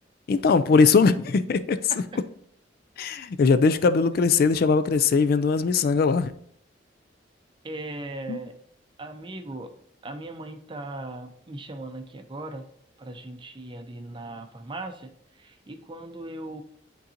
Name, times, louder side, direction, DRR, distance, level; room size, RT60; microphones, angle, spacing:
voice 1, 0.3-1.8 3.0-6.3 8.3-8.4, left 4 dB, 55° left, 0.3 m, -20 dB
voice 2, 1.9-2.2 7.6-8.5 9.0-9.7 10.0-12.7 13.0-16.6, right 2 dB, 25° right, 0.6 m, -38 dB
10.0 x 3.8 x 2.8 m
head